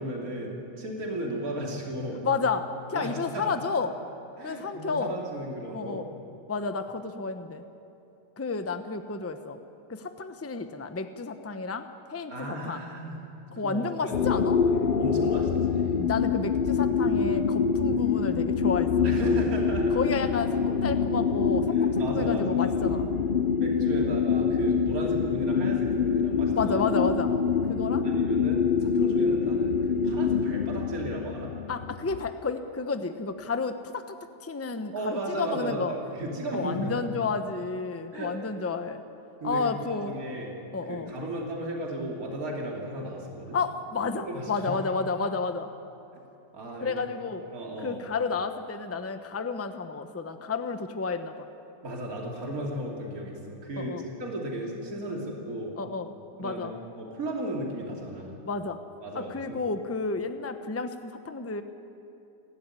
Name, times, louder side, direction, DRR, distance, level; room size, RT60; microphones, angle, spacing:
voice 1, 0.0-2.2 2.9-3.5 4.4-6.0 12.3-13.2 13.5-14.1 14.7-16.0 19.0-20.0 21.7-22.7 23.6-26.8 28.0-31.5 34.9-37.0 38.1-38.3 39.4-40.5 40.9-43.6 44.2-45.0 46.5-46.9 47.5-48.1 51.8-55.8 56.4-56.7 57.0-58.4 59.0-59.6, right 1 dB, 55° right, -1 dB, 3.3 m, -35 dB
voice 2, 2.2-4.0 4.4-5.2 5.7-6.1 6.5-7.6 8.4-9.6 9.9-12.8 13.5-14.6 15.9-19.1 19.9-23.1 26.5-27.3 27.7-28.0 31.7-34.0 34.4-35.9 36.5-39.0 39.4-40.1 40.7-41.1 43.5-45.7 46.8-47.5 47.8-51.5 53.8-54.0 55.8-56.1 56.4-56.7 58.5-58.8 59.1-61.6, left 4 dB, 10° left, 8 dB, 0.7 m, -31 dB
sound 1, 14.1-32.3, left 6 dB, 65° left, 0.5 m, -25 dB
30.0 x 13.0 x 9.9 m, 2.8 s
omnidirectional pair, 1.8 m